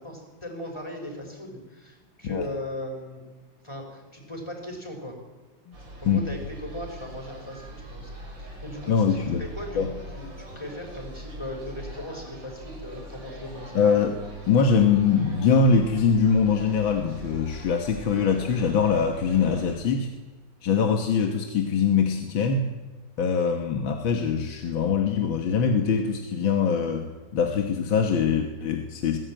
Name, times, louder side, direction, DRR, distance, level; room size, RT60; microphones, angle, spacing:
voice 1, 0.0-3.2 3.6-5.2 6.0-8.1 8.4-13.9, left 1 dB, 15° left, 2 dB, 5.4 m, -38 dB
sound 1, 5.7-19.8, right 1 dB, 75° right, 5.8 m, -42 dB
voice 2, 8.9-9.4 9.8-9.9 13.7-14.2 14.5-20.1 20.6-22.7 23.2-27.1 27.3-29.2, left 6 dB, 80° left, 4 dB, 2.2 m, -23 dB
22.0 x 16.0 x 9.0 m, 1.2 s
omnidirectional pair, 2.1 m